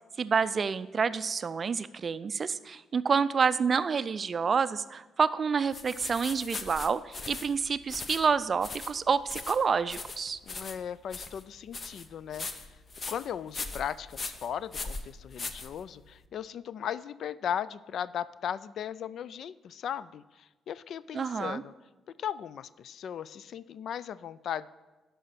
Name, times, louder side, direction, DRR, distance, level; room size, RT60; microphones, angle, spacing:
voice 1, 0.2-10.4 21.1-21.6, right 5 dB, 40° right, 15 dB, 0.4 m, -28 dB
sound 1, 5.7-16.2, left 3 dB, 35° left, 0.8 m, -40 dB
voice 2, 10.4-12.5 13.1-21.7 22.2-24.7, left 9 dB, 65° left, 18 dB, 0.3 m, -37 dB
11.0 x 5.6 x 5.8 m, 1.1 s
cardioid pair, 90°, 0 cm